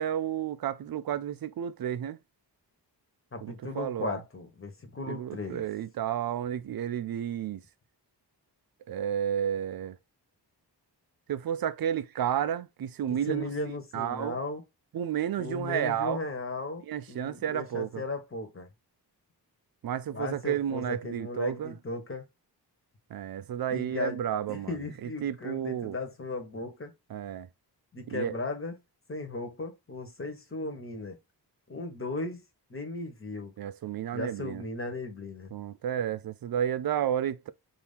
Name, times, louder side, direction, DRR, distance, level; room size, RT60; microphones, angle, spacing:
voice 1, 0.0-2.2 3.4-4.1 5.1-7.6 8.9-10.0 11.3-13.5 13.9-14.4 14.9-16.2 16.9-18.0 19.8-21.8 23.1-24.7 25.0-26.0 27.1-27.5 28.1-28.3 33.6-34.6 35.5-37.5, right 9 dB, 60° right, 0.5 m, -31 dB
voice 2, 3.3-5.7 13.1-14.6 15.4-18.7 20.1-22.3 23.7-26.9 27.9-28.8 29.1-31.2 31.7-32.4 32.7-33.5 34.1-35.5, left 3 dB, 30° left, 1.2 m, -36 dB
4.4 x 2.8 x 3.5 m
wide cardioid pair, 110°, 41 cm